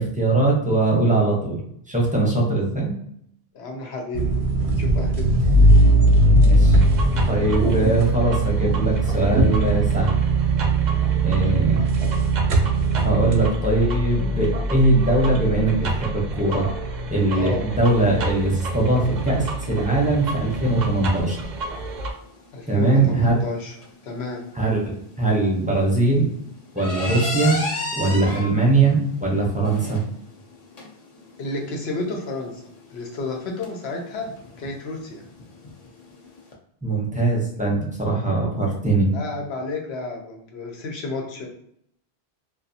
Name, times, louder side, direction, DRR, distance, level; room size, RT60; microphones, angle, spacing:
voice 1, 0.0-1.6 1.9-2.9 6.3-6.8 7.3-10.1 11.2-11.8 13.0-16.7 17.1-21.4 22.7-23.4 24.6-26.3 26.7-27.6 27.9-30.0 36.8-39.1, right 2 dB, 10° right, -4 dB, 0.5 m, -21 dB
voice 2, 3.5-4.3 4.8-5.3 11.5-11.8 17.4-17.7 22.5-23.7 24.0-24.4 31.4-32.6 32.9-34.3 34.6-35.2 39.1-41.5, left 3 dB, 85° left, 1 dB, 0.9 m, -31 dB
sound 1, 4.1-13.5, right 2 dB, 80° right, 0.8 m, -18 dB
sound 2, 6.8-22.1, right 1 dB, 55° right, 0.6 m, -30 dB
sound 3, 17.9-36.5, left 2 dB, 45° left, 0.5 m, -36 dB
2.4 x 2.3 x 2.6 m, 0.70 s
omnidirectional pair, 1.1 m